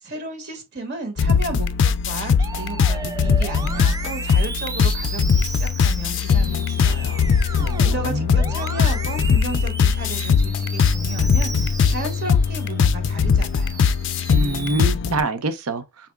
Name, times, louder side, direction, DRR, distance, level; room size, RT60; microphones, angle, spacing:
voice 1, 0.0-13.9, right 2 dB, 50° right, 1.1 m, -34 dB
sound 1, 1.2-15.2, left 6 dB, 55° left, 0.3 m, -20 dB
Musical instrument, 2.4-12.8 13.3-14.8, right 4 dB, 15° right, 0.4 m, -35 dB
voice 2, 7.6-8.5 14.3-16.1, right 2 dB, 85° right, 0.7 m, -26 dB
4.2 x 3.5 x 2.3 m
head